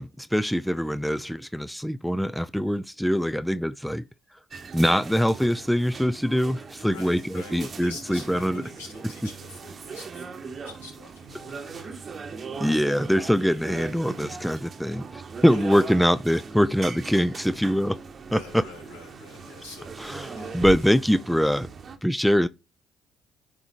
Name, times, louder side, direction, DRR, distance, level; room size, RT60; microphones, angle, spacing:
voice 1, 0.0-4.0 4.7-8.6 11.6-11.9 12.6-18.0 18.3-18.6 20.0-21.7 22.0-22.5, equal, ahead, 0.5 m, -23 dB
sound 1, 4.5-22.0, right 5 dB, 40° right, 1.0 m, -39 dB
voice 2, 6.9-11.9 15.5-16.0 18.3-20.7, left 2 dB, 85° left, 2.6 m, -45 dB
10.5 x 3.6 x 2.9 m
hypercardioid pair, 50°, 0 cm